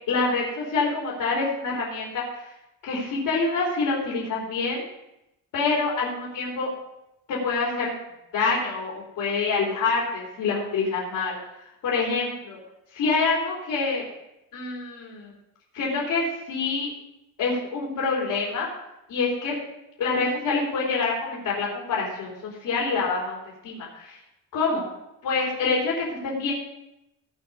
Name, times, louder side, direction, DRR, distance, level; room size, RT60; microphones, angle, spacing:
voice 1, 0.1-2.5 2.8-4.8 5.5-6.7 7.3-7.9 8.3-11.4 11.8-12.6 12.9-14.0 14.5-15.3 15.7-16.9 17.4-18.7 19.1-19.5 20.0-23.4 23.6-24.2 24.5-24.9 25.2-26.5, left 4 dB, 85° left, -4 dB, 3.4 m, -26 dB
17.0 x 5.7 x 5.3 m, 0.87 s
wide cardioid pair, 160°, 32 cm